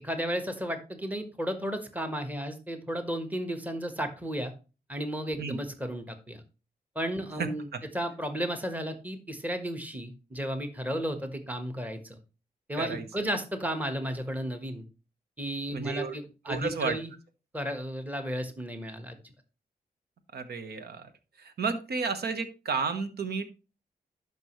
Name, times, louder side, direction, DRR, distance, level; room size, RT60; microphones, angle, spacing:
voice 1, 0.0-4.5 4.9-6.4 6.9-7.7 7.9-12.2 12.7-14.8 15.4-17.1 17.5-19.2, equal, 10° right, 7 dB, 1.4 m, -33 dB
voice 2, 12.8-13.3 15.7-16.1 16.5-17.0 20.3-21.1 21.4-23.4, right 5 dB, 80° right, 9 dB, 1.2 m, -32 dB
12.0 x 5.3 x 3.2 m, 0.32 s
cardioid pair, 65°, 16 cm